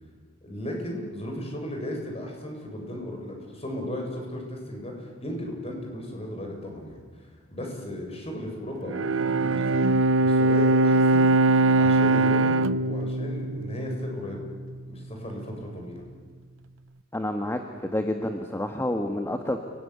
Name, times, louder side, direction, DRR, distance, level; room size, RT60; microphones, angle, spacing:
voice 1, 0.4-11.3 11.7-14.5 14.9-16.0, left 1 dB, 30° left, 1 dB, 7.2 m, -36 dB
Bowed string instrument, 8.9-14.4, right 2 dB, 75° right, 0.8 m, -22 dB
voice 2, 17.1-19.6, left 1 dB, 10° left, 5 dB, 1.5 m, -29 dB
30.0 x 19.0 x 9.7 m, 1.5 s
head